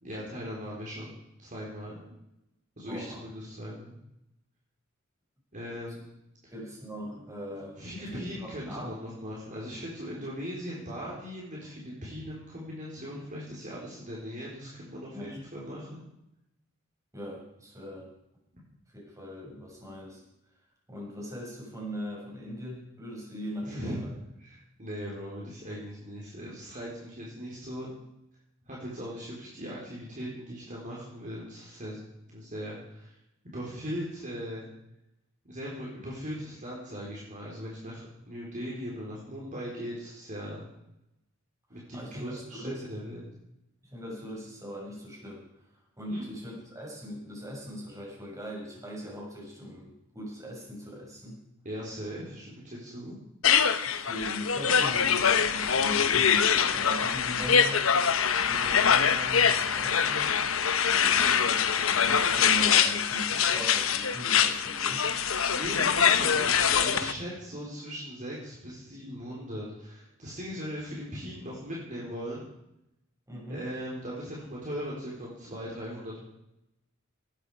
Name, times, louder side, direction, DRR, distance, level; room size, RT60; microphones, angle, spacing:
voice 1, 0.0-2.1 2.8-3.9 5.5-6.0 7.8-16.0 23.6-24.0 24.4-27.9 28.7-32.0 32.3-33.2 33.4-34.7 35.4-40.6 41.7-43.3 46.1-46.2 51.6-53.2 61.1-61.4 65.5-72.4 73.5-76.2, equal, 40° right, -4 dB, 4.1 m, -39 dB
voice 2, 2.9-3.2 6.5-9.0 15.1-15.4 17.1-18.1 18.9-20.2 20.9-24.1 41.9-42.8 43.8-45.4 46.0-51.4 53.8-57.8 58.3-60.5 61.4-61.5 61.9-65.1 73.3-73.6, equal, 15° right, -3 dB, 6.8 m, -40 dB
sound 1, 53.4-67.1, left 7 dB, 75° left, 1.1 m, -24 dB
18.5 x 13.0 x 4.9 m, 0.84 s
head